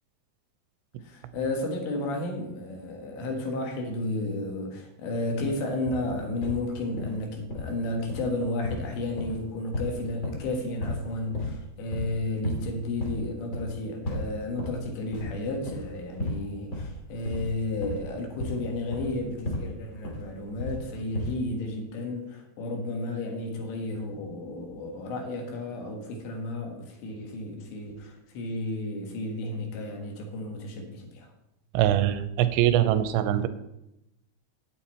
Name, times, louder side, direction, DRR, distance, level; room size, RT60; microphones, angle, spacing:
voice 1, 1.0-31.3, left 2 dB, 75° left, 2 dB, 3.8 m, -32 dB
sound 1, 5.9-6.6 7.0-7.2 7.5-7.8 8.1-8.3 8.6-10.5 10.8-11.0 11.3-11.6 11.9-12.2 12.4-12.7 13.0-13.3 13.5-13.8 14.0-14.8 15.1-15.4 15.7-15.9 16.2-16.4 16.7-19.7 20.0-20.9 21.1-21.4, left 1 dB, 35° left, 2.5 m, -34 dB
voice 2, 31.7-33.5, right 12 dB, 85° right, 11 dB, 2.9 m, -23 dB
9.2 x 9.0 x 4.3 m, 0.86 s
omnidirectional pair, 5.2 m